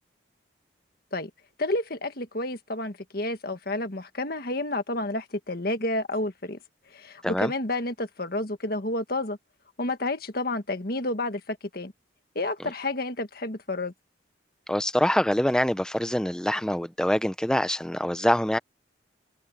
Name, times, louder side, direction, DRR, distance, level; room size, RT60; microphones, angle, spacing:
voice 1, 1.6-6.6 6.9-9.4 9.8-11.9 12.4-13.9, left 2 dB, 50° left, 1.7 m, -30 dB
voice 2, 14.7-18.6, equal, 5° left, 0.7 m, -25 dB
head